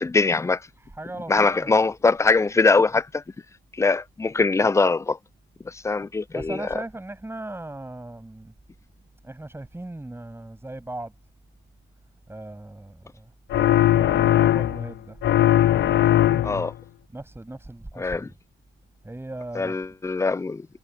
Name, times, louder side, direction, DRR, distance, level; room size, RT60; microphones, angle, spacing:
voice 1, 0.0-0.6 1.3-3.2 3.8-5.2 5.7-6.7 16.4-16.7 18.0-18.3 19.6-20.7, left 3 dB, 15° left, 0.5 m, -22 dB
voice 2, 0.8-1.8 6.3-8.5 9.2-11.1 12.3-13.3 13.9-15.2 15.7-16.7 17.1-18.2 19.0-19.8, right 2 dB, 10° right, 8.0 m, -38 dB
sound 1, 13.5-14.9 15.2-16.7, left 13 dB, 65° left, 0.7 m, -19 dB
cardioid pair, 90°, 20 cm